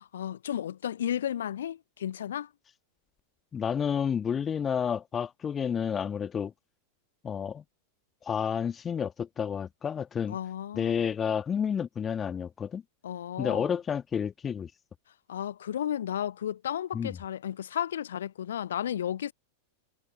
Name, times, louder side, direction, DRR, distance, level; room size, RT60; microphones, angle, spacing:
voice 1, 0.0-2.5 10.3-11.0 13.0-13.8 15.3-19.3, left 10 dB, 65° left, 0.7 m, -33 dB
voice 2, 3.5-6.5 7.2-7.6 8.2-10.4 10.7-12.8 13.4-14.7 16.9-17.2, left 7 dB, 20° left, 1.6 m, -30 dB
figure-of-eight pair, 90°, 0 cm